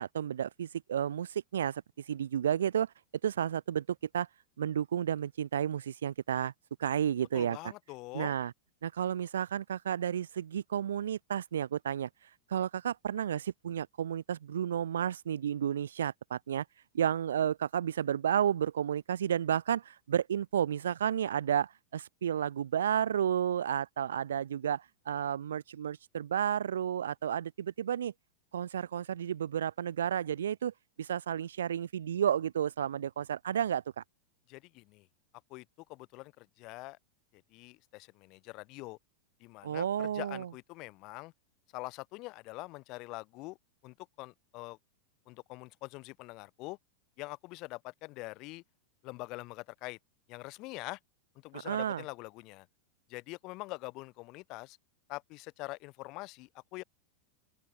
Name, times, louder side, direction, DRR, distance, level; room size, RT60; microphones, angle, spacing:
voice 1, 0.0-2.9 3.2-4.3 4.6-6.5 6.8-7.7 8.1-8.5 8.8-16.6 16.9-28.1 28.5-34.0 39.6-40.5 51.5-52.0, right 9 dB, 65° right, 4.8 m, -32 dB
voice 2, 7.3-8.4 34.5-35.1 35.5-37.0 37.3-39.0 39.4-41.3 41.7-43.6 43.8-44.8 45.3-46.8 47.2-48.6 49.0-50.0 50.3-51.0 51.3-52.7 53.1-54.8 55.1-56.8, left 23 dB, 40° left, 6.1 m, -44 dB
open air
figure-of-eight pair, 90°, 0 cm